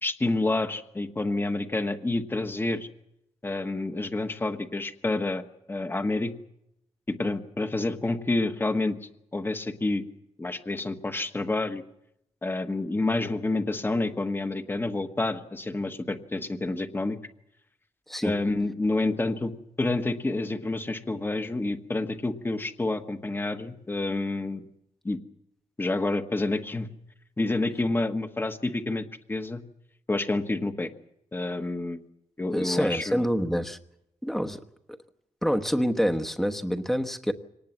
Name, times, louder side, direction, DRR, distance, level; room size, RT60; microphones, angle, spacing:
voice 1, 0.0-2.9 3.4-5.4 5.7-6.3 7.1-9.0 9.3-10.0 10.4-11.8 12.4-17.2 18.2-19.5 19.8-24.6 25.0-25.2 25.8-26.9 27.4-29.6 30.1-30.9 31.3-32.0 32.4-33.2, left 2 dB, 20° left, 8 dB, 1.3 m, -28 dB
voice 2, 32.5-33.8 34.2-34.6 35.4-37.3, equal, 5° left, 6 dB, 1.1 m, -26 dB
25.0 x 19.0 x 7.3 m, 0.79 s
wide cardioid pair, 155°, 12 cm